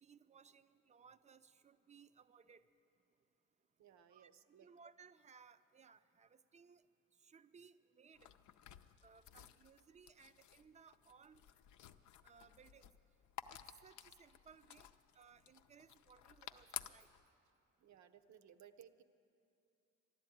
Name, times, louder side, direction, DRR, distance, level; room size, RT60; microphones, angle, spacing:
voice 1, 0.0-2.6 4.1-4.3 4.6-6.8 7.2-8.3 9.0-11.4 12.2-12.9 13.5-14.9 15.1-17.1, right 6 dB, 25° right, 13 dB, 0.5 m, -63 dB
voice 2, 3.8-4.7 17.8-19.0, right 9 dB, 65° right, 10 dB, 0.8 m, -62 dB
sound 1, 8.1-17.2, left 10 dB, 75° left, 0.6 m, -54 dB
12.5 x 11.0 x 9.1 m, 2.6 s
cardioid pair, 90°, 30 cm